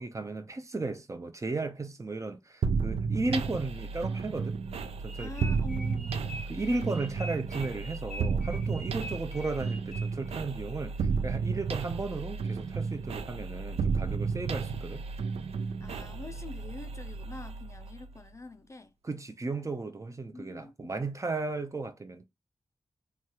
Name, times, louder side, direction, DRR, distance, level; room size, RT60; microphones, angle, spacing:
voice 1, 0.0-4.6 5.0-5.7 6.5-15.0 19.0-22.3, right 3 dB, 30° right, 0.5 m, -35 dB
sound 1, 2.6-18.3, right 5 dB, 85° right, 0.4 m, -33 dB
sound 2, 5.1-10.4, equal, 5° left, 0.8 m, -45 dB
voice 2, 5.2-6.4 15.8-18.9 20.3-20.9, left 2 dB, 30° left, 0.4 m, -45 dB
3.1 x 2.3 x 2.8 m
cardioid pair, 70°, 10 cm